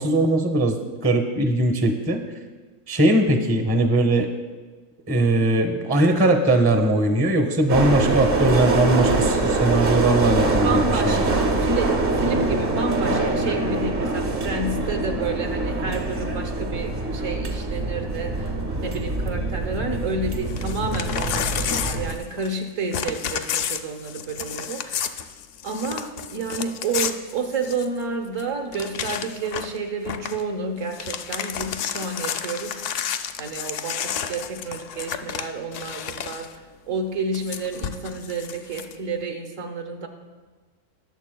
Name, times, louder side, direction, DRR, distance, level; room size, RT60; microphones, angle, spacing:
voice 1, 0.0-2.2 2.9-4.3 5.1-11.3, right 1 dB, 15° right, 5 dB, 0.5 m, -20 dB
sound 1, 7.7-22.1, right 2 dB, 45° right, 0.9 m, -24 dB
voice 2, 10.1-25.3 25.6-32.8 33.4-40.1, right 3 dB, 60° right, 4 dB, 1.3 m, -30 dB
Crumpling crinkling / Tearing, 20.5-22.6 22.9-28.0 28.4-28.5 28.7-29.8 30.0-30.4 30.8-36.5 37.3-38.9, left 8 dB, 70° left, 0.7 m, -31 dB
20.0 x 7.0 x 2.3 m, 1.3 s
omnidirectional pair, 1.6 m